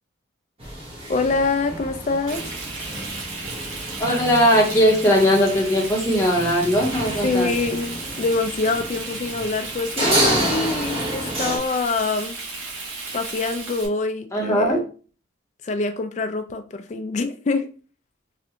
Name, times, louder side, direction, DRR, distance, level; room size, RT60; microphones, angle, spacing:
sound 1, 0.6-11.6, right 1 dB, 30° right, 0.9 m, -29 dB
voice 1, 1.1-2.4 7.2-12.4 13.1-14.9 15.6-17.7, left 3 dB, 35° left, 0.3 m, -25 dB
Frying (food), 2.3-13.9, right 3 dB, 90° right, 1.0 m, -34 dB
voice 2, 4.0-7.5 14.3-14.8, equal, 15° left, 0.7 m, -19 dB
3.2 x 2.5 x 2.8 m
head